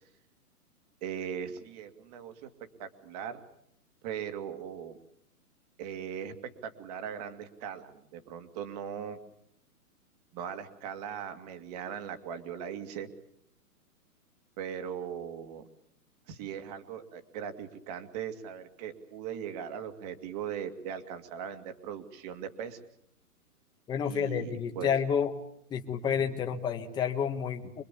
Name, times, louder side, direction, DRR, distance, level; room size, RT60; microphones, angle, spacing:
voice 1, 1.0-2.5 2.8-3.4 4.0-5.0 5.8-9.2 10.3-13.1 14.6-15.6 16.3-22.9 24.0-24.9, right 8 dB, 25° right, 9 dB, 2.3 m, -39 dB
voice 2, 23.9-25.3 25.7-27.8, left 7 dB, 10° left, 5 dB, 1.5 m, -30 dB
26.0 x 23.0 x 8.5 m, 0.72 s
hypercardioid pair, 165°, 46 cm